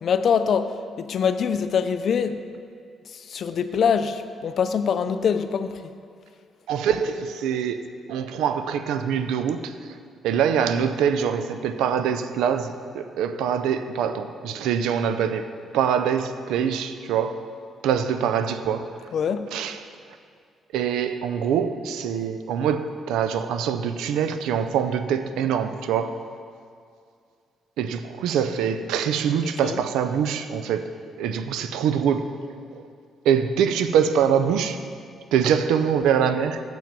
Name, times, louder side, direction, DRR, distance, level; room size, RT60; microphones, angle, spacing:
voice 1, 0.0-2.4 3.1-5.9 19.1-19.5 29.6-29.8, left 7 dB, 60° left, 10 dB, 0.5 m, -24 dB
voice 2, 6.7-7.8 8.1-9.8 10.2-17.5 17.8-18.9 19.5-19.8 20.7-26.3 27.8-32.4 32.8-32.9 33.2-34.8 35.3-36.6, right 8 dB, 90° right, 10 dB, 0.4 m, -24 dB
7.0 x 6.0 x 7.3 m, 2.3 s
cardioid pair, 90°, 0 cm